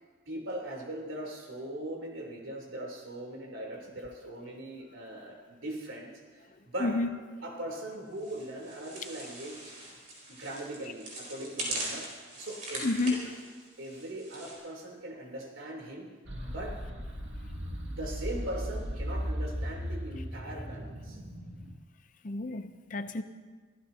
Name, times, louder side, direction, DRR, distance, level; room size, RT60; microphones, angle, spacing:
voice 1, 0.3-6.9 7.4-9.8 10.3-12.1 12.4-13.3 13.8-16.1 16.4-16.7 17.8-21.2, right 1 dB, 85° right, -1 dB, 3.5 m, -40 dB
voice 2, 6.8-7.2 12.8-13.4 22.2-23.2, left 3 dB, 40° left, 9 dB, 0.7 m, -30 dB
sound 1, 8.2-14.6, right 1 dB, 40° right, 4.6 m, -41 dB
sound 2, 16.3-21.7, equal, 60° right, 2.2 m, -37 dB
24.5 x 15.0 x 2.9 m, 1.4 s
head